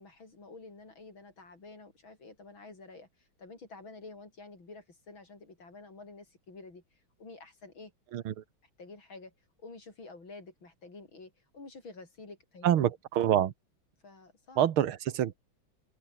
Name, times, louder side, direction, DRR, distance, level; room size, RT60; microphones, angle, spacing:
voice 1, 0.0-6.8 7.2-7.9 8.8-9.3 9.6-12.8 14.0-14.7, left 3 dB, 70° left, 6.1 m, -49 dB
voice 2, 8.1-8.4 12.6-13.5 14.6-15.4, right 11 dB, 80° right, 2.0 m, -26 dB
open air
omnidirectional pair, 2.3 m